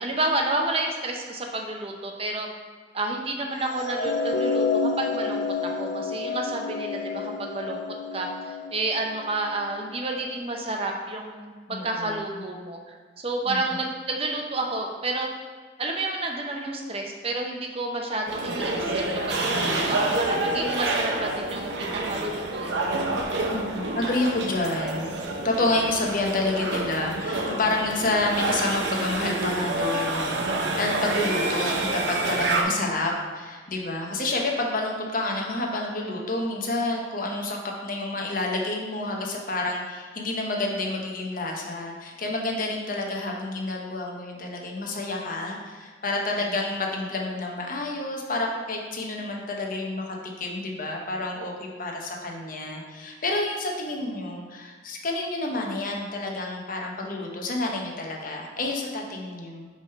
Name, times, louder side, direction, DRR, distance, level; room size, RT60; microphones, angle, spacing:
voice 1, 0.0-2.5 2.9-4.6 5.0-7.8 8.1-15.3 15.8-19.0 19.3-23.1 46.5-46.6, right 2 dB, 30° right, 2 dB, 0.7 m, -30 dB
sound 1, 3.7-9.9, left 4 dB, 90° left, 0.5 m, -29 dB
voice 2, 11.7-12.4 13.5-13.6 19.5-20.0 23.5-25.1 25.4-59.7, left 2 dB, 50° left, 0 dB, 0.9 m, -29 dB
sound 2, 18.3-32.6, right 2 dB, 65° right, 0.7 m, -28 dB
5.0 x 3.7 x 5.4 m, 1.5 s
head